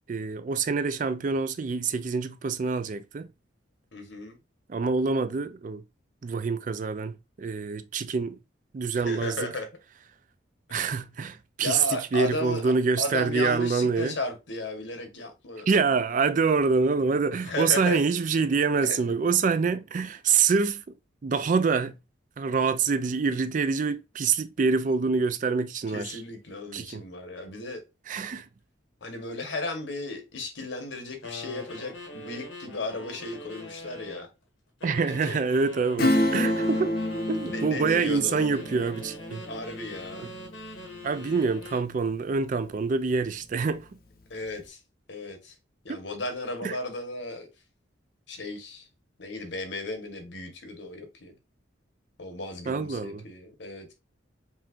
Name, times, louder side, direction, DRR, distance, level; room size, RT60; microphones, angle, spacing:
voice 1, 0.1-3.3 4.7-5.8 6.2-8.4 8.7-9.4 10.7-11.8 12.1-14.1 15.7-20.8 21.2-21.9 22.4-26.2 26.7-27.0 28.1-28.5 34.8-36.9 37.3-39.4 41.0-43.9 45.9-46.0 46.6-46.8 52.7-53.2, right 5 dB, 40° right, 0.3 m, -26 dB
voice 2, 3.9-4.4 8.9-9.7 11.6-15.7 17.4-18.0 18.8-19.1 25.9-27.8 29.0-34.3 35.1-35.4 37.4-38.6 39.5-40.3 44.3-44.8 45.1-45.6 45.8-47.5 48.3-48.9 49.2-51.4 52.2-54.0, left 2 dB, 70° left, 1.2 m, -35 dB
sound 1, 31.2-34.3 34.8-37.8 38.4-41.9, left 1 dB, 90° left, 1.5 m, -43 dB
Acoustic guitar / Strum, 36.0-42.2 42.6-42.7, left 1 dB, 50° left, 0.7 m, -29 dB
5.5 x 2.9 x 2.5 m
head